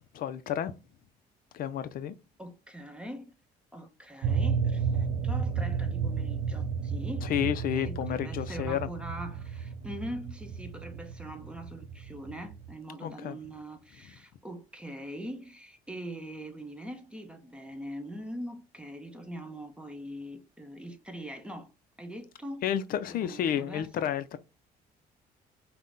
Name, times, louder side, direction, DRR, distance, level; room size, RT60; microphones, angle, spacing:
voice 1, 0.1-0.7 1.5-2.1 7.2-8.9 13.0-13.4 22.6-24.4, left 10 dB, 60° left, 0.4 m, -31 dB
voice 2, 2.4-3.2 3.7-21.7 22.0-22.6 23.2-24.1, equal, 5° right, 0.8 m, -42 dB
sound 1, 4.2-12.7, right 6 dB, 60° right, 0.4 m, -32 dB
5.6 x 2.1 x 3.7 m
cardioid pair, 110°, 17 cm